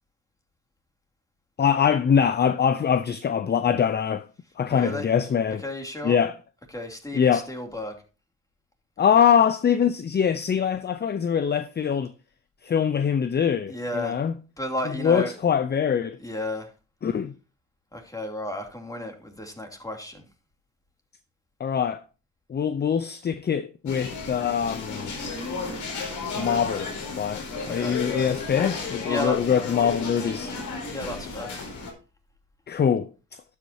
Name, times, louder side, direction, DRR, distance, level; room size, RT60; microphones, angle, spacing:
voice 1, 1.6-4.2 4.6-5.6 6.0-6.4 7.1-7.5 9.0-12.1 12.6-14.3 15.0-16.2 17.0-17.3 21.6-22.0 22.5-25.1 26.4-26.9 27.2-30.5 32.7-33.1, left 7 dB, 35° left, 0.6 m, -23 dB
voice 2, 4.7-5.1 5.5-6.2 6.7-7.9 13.7-14.1 14.6-15.3 16.2-16.7 17.9-20.2 27.8-27.9 29.0-29.4 30.9-31.5, left 1 dB, 10° left, 2.9 m, -33 dB
sound 1, 23.9-31.9, left 4 dB, 75° left, 4.2 m, -33 dB
12.0 x 8.4 x 2.8 m
cardioid pair, 90°, 30 cm